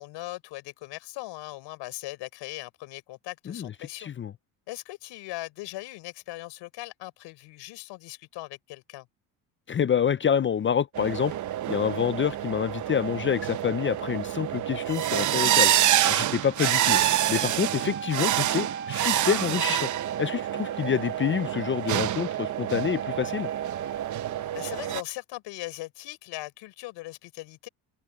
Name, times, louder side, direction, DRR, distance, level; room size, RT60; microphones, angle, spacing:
voice 1, 0.0-4.1 4.7-9.1 24.5-27.7, left 19 dB, 75° left, 4.2 m, -39 dB
voice 2, 4.0-4.3 9.7-11.3 11.7-15.7 16.0-19.9 20.2-23.5, left 8 dB, 30° left, 0.6 m, -27 dB
sound 1, 10.9-25.0, right 12 dB, 45° right, 0.8 m, -27 dB
Wind instrument woodwind instrument, 17.6-24.6, right 6 dB, 25° right, 5.6 m, -39 dB
cardioid pair, 105°, 43 cm